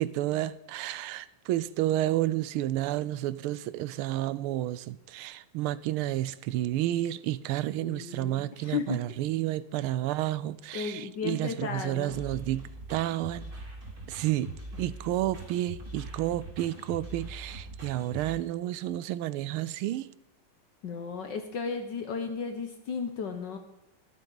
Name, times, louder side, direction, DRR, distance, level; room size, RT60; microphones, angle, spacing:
voice 1, 0.0-13.4 14.1-14.5 14.8-20.1, right 14 dB, 90° right, 1.5 m, -31 dB
voice 2, 7.8-9.0 10.7-12.2 14.8-14.9 20.8-23.6, left 5 dB, 65° left, 1.5 m, -34 dB
sound 1, 12.1-18.3, right 2 dB, 55° right, 4.3 m, -42 dB
22.5 x 8.1 x 4.0 m
omnidirectional pair, 2.3 m